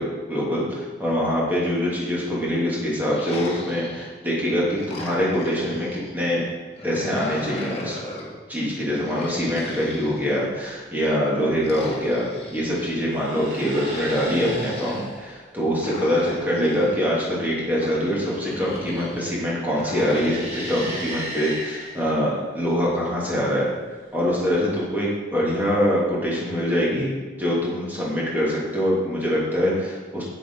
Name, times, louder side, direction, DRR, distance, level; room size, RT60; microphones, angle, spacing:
voice 1, 0.0-6.5 6.8-8.0 8.5-23.7 24.1-30.2, equal, 10° right, -6 dB, 2.7 m, -24 dB
sound 1, 3.0-4.3 4.7-6.2 6.7-8.4 9.0-10.7 11.6-12.9 13.7-15.0 15.8-17.1 17.7-19.3 19.7-21.2, left 1 dB, 35° left, 1.8 m, -37 dB
sound 2, 9.6-10.0 11.5-11.9 13.0-15.4 19.6-22.2 24.0-24.8, right 1 dB, 40° right, 3.2 m, -36 dB
9.0 x 7.5 x 5.5 m, 1.4 s
head